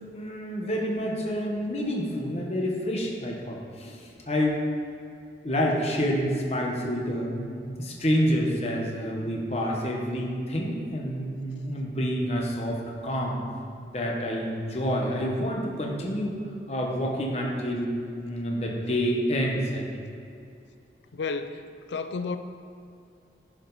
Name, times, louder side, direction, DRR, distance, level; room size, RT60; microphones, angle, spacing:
voice 1, 0.1-4.6 5.4-13.4 13.8-16.4 16.7-17.9 18.2-20.0, equal, 35° left, -1 dB, 1.1 m, -28 dB
voice 2, 21.1-22.4, left 4 dB, 85° left, 9 dB, 0.5 m, -32 dB
10.5 x 5.0 x 4.0 m, 2.6 s
head